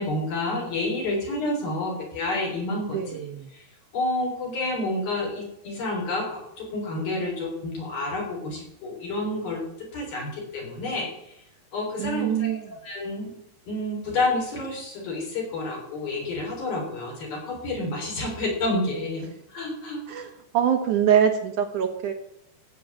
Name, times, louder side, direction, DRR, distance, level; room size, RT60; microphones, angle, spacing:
voice 1, 0.0-3.2 3.5-3.6 3.9-11.1 11.7-13.3 13.7-20.0, left 2 dB, 60° left, -2 dB, 5.4 m, -29 dB
voice 2, 2.9-3.5 12.0-12.6 20.1-20.3 20.5-22.1, right 8 dB, 65° right, 6 dB, 2.0 m, -23 dB
14.5 x 8.6 x 7.6 m, 0.80 s
omnidirectional pair, 4.9 m